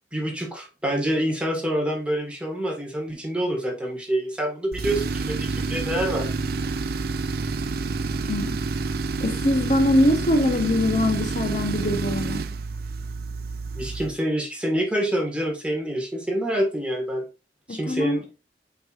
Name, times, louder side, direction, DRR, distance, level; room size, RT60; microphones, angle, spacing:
voice 1, 0.1-6.3 13.7-17.3 17.7-18.3, right 1 dB, 5° right, 1.8 m, -26 dB
Tools, 4.7-14.2, right 3 dB, 60° right, 0.5 m, -28 dB
voice 2, 8.3-8.6 9.2-12.4 17.7-18.2, left 1 dB, 45° left, 1.0 m, -22 dB
8.0 x 4.7 x 2.5 m
head